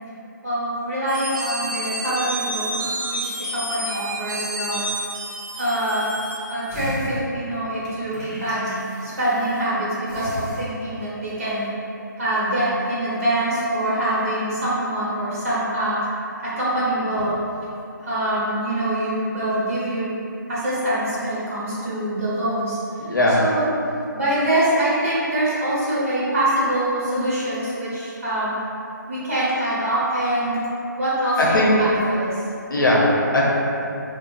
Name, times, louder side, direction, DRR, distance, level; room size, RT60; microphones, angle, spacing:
voice 1, 0.4-4.8 5.5-6.1 6.5-8.8 9.0-11.7 12.2-16.0 16.4-17.4 18.0-20.2 20.5-22.8 23.4-23.7 24.1-28.6 29.1-30.6 31.0-32.4, right 1 dB, 45° right, -9 dB, 0.9 m, -24 dB
sound 1, 1.1-6.8, right 1 dB, 75° right, 0.7 m, -30 dB
sound 2, 6.7-9.7 10.1-11.1 11.5-11.6, equal, 20° left, 0.5 m, -35 dB
voice 2, 23.0-23.4 31.4-31.9 32.7-33.4, left 1 dB, 80° left, -4 dB, 0.6 m, -18 dB
2.8 x 2.0 x 2.3 m, 2.7 s
figure-of-eight pair, 160°, 11 cm